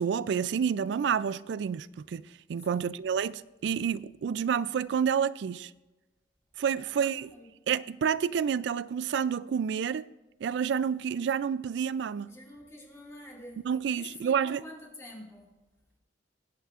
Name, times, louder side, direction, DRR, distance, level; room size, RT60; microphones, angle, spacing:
voice 1, 0.0-5.7 6.6-7.3 7.7-10.1 10.4-12.3 13.6-14.6, right 7 dB, 75° right, 0.3 m, -29 dB
voice 2, 2.6-3.0 6.7-7.5 12.3-15.6, left 1 dB, 15° left, 2.1 m, -48 dB
17.5 x 9.2 x 2.5 m
head